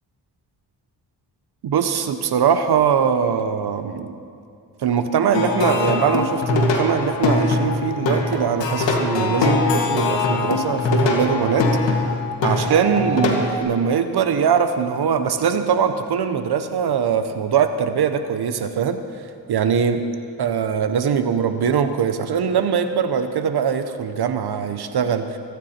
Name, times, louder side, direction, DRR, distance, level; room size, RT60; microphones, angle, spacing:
voice 1, 1.6-4.2 4.8-12.0 12.4-19.0 19.5-20.0 20.4-25.4, right 7 dB, 65° right, 9 dB, 0.9 m, -21 dB
Plucked string instrument, 5.3-13.6, left 3 dB, 85° left, 1.9 m, -22 dB
24.0 x 9.6 x 4.4 m, 2.6 s
cardioid pair, 80°, 43 cm